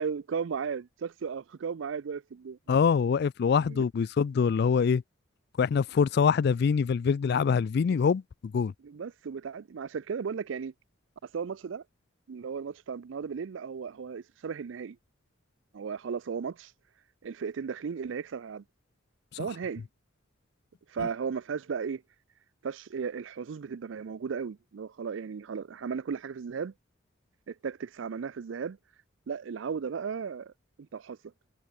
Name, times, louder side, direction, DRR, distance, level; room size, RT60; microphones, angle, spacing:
voice 1, 0.0-2.6 3.6-3.8 8.8-10.7 11.2-11.8 12.3-15.0 15.7-16.7 17.2-18.6 19.4-19.8 20.9-22.0 22.6-26.7 27.5-28.8 29.3-30.5 30.8-31.2, right 6 dB, 70° right, 0.4 m, -35 dB
voice 2, 2.7-5.0 5.6-8.7, left 6 dB, 55° left, 0.3 m, -24 dB
head